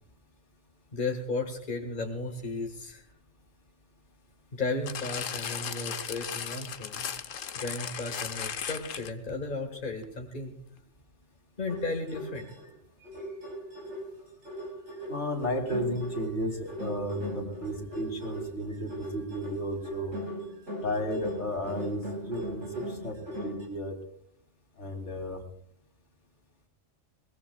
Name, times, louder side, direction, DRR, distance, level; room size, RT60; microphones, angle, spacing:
voice 1, 0.9-3.0 4.5-10.5 11.6-12.5, left 3 dB, 40° left, 3 dB, 1.8 m, -34 dB
sound 1, 4.9-9.3 10.0-10.1, left 8 dB, 85° left, 1.3 m, -36 dB
sound 2, 11.7-12.7 13.0-23.7, equal, 75° right, 6.0 m, -39 dB
voice 2, 15.1-20.1 20.8-23.2 23.4-24.0 24.8-25.4, equal, 65° left, 3 dB, 3.3 m, -33 dB
22.5 x 21.0 x 2.3 m, 0.71 s
omnidirectional pair, 1.3 m